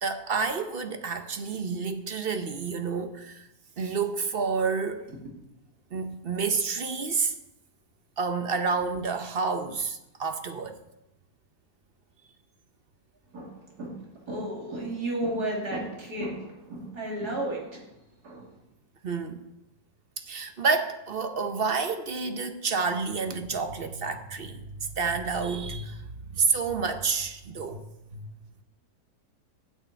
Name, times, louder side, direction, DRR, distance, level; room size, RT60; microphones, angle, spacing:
voice 1, 0.0-3.5 3.8-5.0 5.9-7.3 8.2-10.8 19.0-19.4 20.2-26.0 26.3-27.8 28.1-28.3, right 5 dB, 45° right, 0.8 m, -29 dB
voice 2, 13.3-14.0 14.3-17.8 18.2-18.5, right 1 dB, 80° right, 3.2 m, -33 dB
10.0 x 6.4 x 8.3 m
omnidirectional pair, 1.7 m